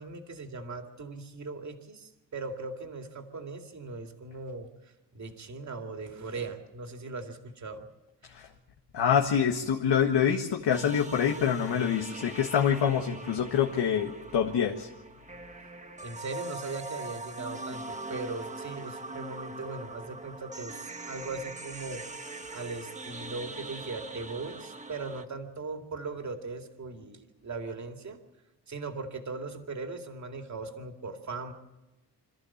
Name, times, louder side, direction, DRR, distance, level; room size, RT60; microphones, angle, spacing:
voice 1, 0.0-7.8 16.0-22.0 22.5-28.2 28.7-31.5, right 3 dB, 40° right, 5 dB, 2.4 m, -39 dB
voice 2, 8.9-14.9, left 8 dB, 75° left, 2 dB, 1.7 m, -26 dB
sound 1, 10.7-25.2, right 2 dB, 15° right, 1.3 m, -42 dB
27.0 x 14.0 x 7.3 m, 1.1 s
wide cardioid pair, 155°, 42 cm